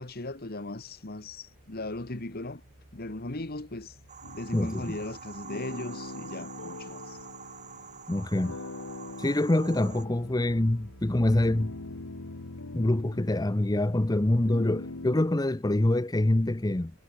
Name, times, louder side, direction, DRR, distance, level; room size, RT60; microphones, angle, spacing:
voice 1, 0.0-2.6 2.9-3.9 4.3-7.2, left 2 dB, 45° left, 1.5 m, -38 dB
sound 1, 1.1-5.8 9.1-13.7 15.8-15.9, right 1 dB, 60° right, 3.7 m, -54 dB
sound 2, 4.1-10.1, right 6 dB, 35° right, 3.5 m, -46 dB
sound 3, 4.2-15.3, left 2 dB, 80° left, 1.5 m, -43 dB
voice 2, 4.5-5.0 8.1-8.6 9.2-11.7 12.7-16.9, left 1 dB, 15° left, 0.6 m, -25 dB
head